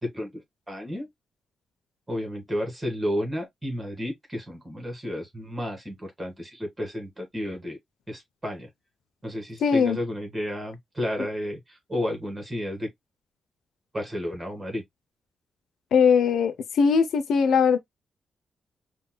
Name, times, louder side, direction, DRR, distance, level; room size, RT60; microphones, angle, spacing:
voice 1, 0.0-1.1 2.1-7.8 8.1-8.7 9.2-12.9 13.9-14.8, left 1 dB, 20° right, 1.9 m, -32 dB
voice 2, 9.6-10.0 15.9-17.8, left 6 dB, 80° left, 0.6 m, -20 dB
5.4 x 2.6 x 2.2 m
cardioid pair, 110°, 0 cm